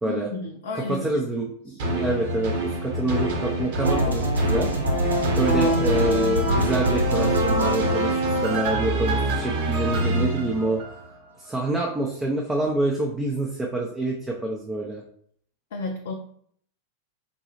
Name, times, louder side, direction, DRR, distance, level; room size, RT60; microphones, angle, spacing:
voice 1, 0.1-1.2 1.7-1.8 5.5-5.6 15.7-16.1, left 3 dB, 55° left, 2 dB, 0.4 m, -33 dB
voice 2, 0.7-4.7 5.4-10.8 11.4-15.0, right 2 dB, 10° right, -1 dB, 0.5 m, -27 dB
sound 1, 1.8-11.2 11.7-11.8, right 1 dB, 55° right, 1.1 m, -26 dB
sound 2, 3.8-9.8, equal, 75° right, 0.6 m, -26 dB
3.9 x 2.3 x 3.0 m, 0.63 s
figure-of-eight pair, 90°, 0 cm